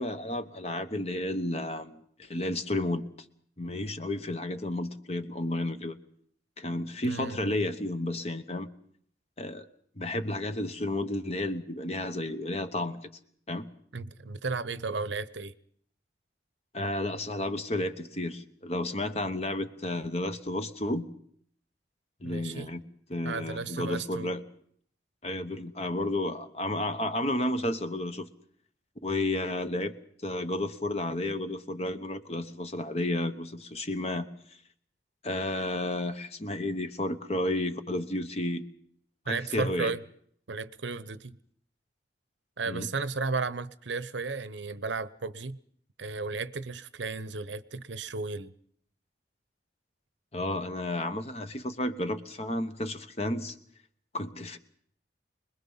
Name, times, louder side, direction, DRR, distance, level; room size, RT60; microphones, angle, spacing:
voice 1, 0.0-3.0 3.6-6.0 6.6-8.7 9.4-9.7 10.0-13.1 13.5-13.7 16.7-21.1 22.2-22.8 23.1-24.4 25.2-28.3 29.0-30.0 30.2-34.3 35.2-38.6 39.3-39.9 42.7-42.9 50.3-53.6 54.1-54.6, left 1 dB, 35° left, 1.1 m, -32 dB
voice 2, 7.0-7.4 13.9-15.5 22.2-22.7 23.2-24.3 39.3-40.0 40.5-41.4 42.6-45.6 46.0-48.5, right 4 dB, 85° right, 0.8 m, -34 dB
25.5 x 21.0 x 5.6 m
head